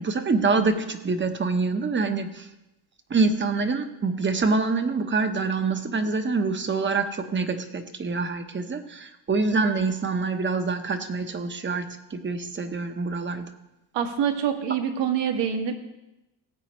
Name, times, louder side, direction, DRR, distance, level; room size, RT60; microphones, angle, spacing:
voice 1, 0.0-2.5 3.1-13.5, right 4 dB, 25° right, 8 dB, 1.0 m, -26 dB
voice 2, 13.9-15.7, right 8 dB, 70° right, 5 dB, 1.6 m, -25 dB
17.5 x 8.4 x 3.1 m, 0.93 s
cardioid pair, 110°, 45 cm